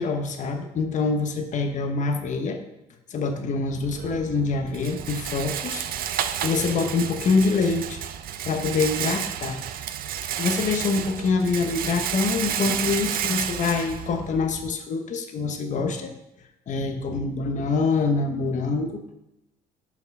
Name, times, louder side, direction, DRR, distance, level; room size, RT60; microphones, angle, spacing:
voice 1, 0.0-2.6 3.1-8.0 8.4-9.6 10.4-16.1 16.7-19.0, left 4 dB, 45° left, 5 dB, 1.0 m, -25 dB
Rattle, 3.7-14.7, right 10 dB, 60° right, 0.5 m, -31 dB
5.8 x 4.7 x 6.0 m, 0.90 s
cardioid pair, 110°, 17 cm